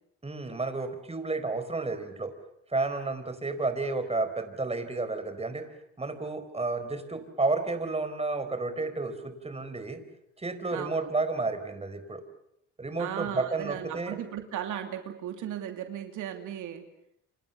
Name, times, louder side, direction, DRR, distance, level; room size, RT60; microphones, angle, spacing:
voice 1, 0.2-2.3 2.7-5.7 6.0-10.0 10.4-12.2 12.8-14.2, right 3 dB, 20° right, 9 dB, 4.5 m, -31 dB
voice 2, 10.7-11.1 13.0-16.8, right 10 dB, 80° right, 6 dB, 2.9 m, -36 dB
29.5 x 26.0 x 6.9 m, 0.75 s
cardioid pair, 90°, 30 cm